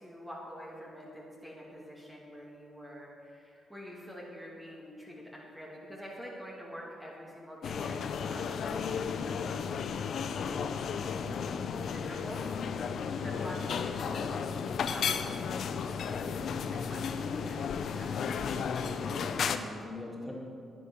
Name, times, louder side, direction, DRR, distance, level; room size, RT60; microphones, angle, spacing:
voice 1, 0.0-10.7 11.7-12.5 13.1-14.5 14.8-16.1 16.7-17.7 17.9-18.3, equal, 10° right, -4 dB, 2.6 m, -46 dB
sound 1, 7.6-19.6, left 6 dB, 65° left, 0.6 m, -34 dB
voice 2, 11.2-11.6 16.1-16.3 19.0-20.3, left 2 dB, 15° left, -3 dB, 2.9 m, -43 dB
10.0 x 9.1 x 6.3 m, 2.6 s
supercardioid pair, 55°, 0 cm